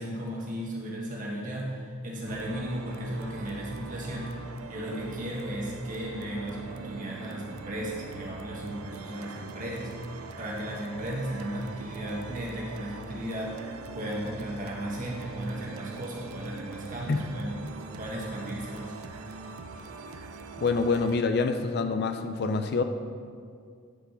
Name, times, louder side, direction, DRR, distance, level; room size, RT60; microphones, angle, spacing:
voice 1, 0.0-17.6 18.0-18.9, right 1 dB, 40° right, -3 dB, 1.7 m, -35 dB
sound 1, 2.3-21.2, right 4 dB, 90° right, 0.6 m, -42 dB
voice 2, 20.6-22.8, left 4 dB, 50° left, 8 dB, 0.4 m, -26 dB
10.5 x 5.0 x 5.4 m, 2.2 s
head